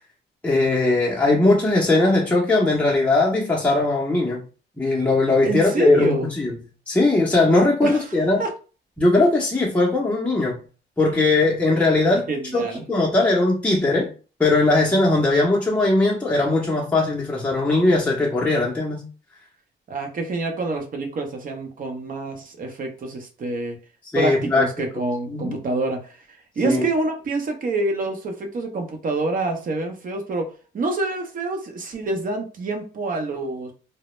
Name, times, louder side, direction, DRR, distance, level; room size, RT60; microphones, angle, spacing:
voice 1, 0.4-4.4 4.8-6.5 6.9-8.4 9.0-10.6 11.0-12.3 12.5-14.1 14.4-19.0 24.1-24.7 25.3-25.6 26.6-26.9, left 2 dB, 5° left, 0.6 m, -19 dB
voice 2, 5.4-6.3 7.8-8.0 8.4-8.5 12.3-12.8 19.9-23.8 24.1-26.2 26.6-33.7, right 2 dB, 45° right, 0.7 m, -27 dB
2.1 x 2.0 x 3.0 m
cardioid pair, 90°, 20 cm